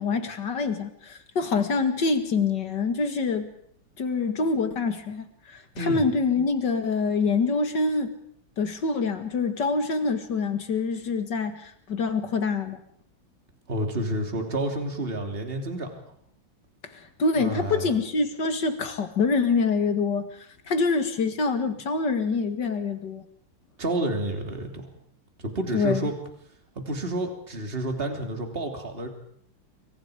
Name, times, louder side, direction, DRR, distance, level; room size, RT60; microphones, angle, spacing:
voice 1, 0.0-3.5 4.0-8.1 8.6-12.8 16.9-23.2 25.7-26.1, left 4 dB, 60° left, 8 dB, 2.5 m, -26 dB
voice 2, 13.7-15.9 17.4-17.9 23.8-24.9 25.4-26.1 26.7-29.1, right 1 dB, 30° right, 4 dB, 3.3 m, -29 dB
29.0 x 24.0 x 5.1 m, 0.65 s
omnidirectional pair, 2.2 m